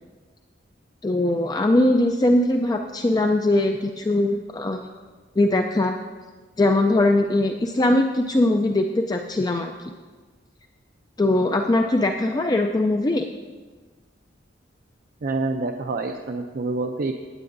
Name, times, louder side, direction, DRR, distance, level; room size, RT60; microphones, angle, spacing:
voice 1, 1.0-4.9 5.4-5.9 6.6-9.9 11.2-13.3, left 1 dB, 20° left, 4 dB, 0.4 m, -21 dB
voice 2, 15.2-17.1, right 3 dB, 50° right, 4 dB, 0.5 m, -27 dB
17.5 x 8.4 x 2.6 m, 1.4 s
head